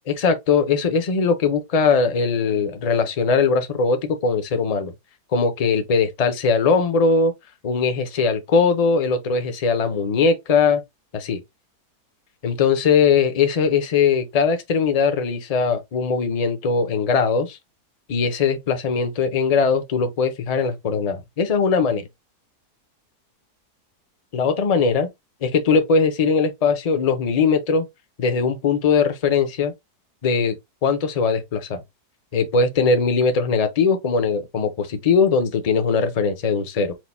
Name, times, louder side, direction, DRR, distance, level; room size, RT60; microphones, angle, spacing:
voice 1, 0.2-4.9 5.3-7.3 7.6-10.8 11.1-11.4 12.4-17.6 18.1-22.0 24.3-25.1 25.4-27.9 28.2-29.7 30.2-30.5 30.8-31.8 32.3-36.9, left 5 dB, 50° left, 0.4 m, -20 dB
4.7 x 2.1 x 4.1 m
omnidirectional pair, 1.7 m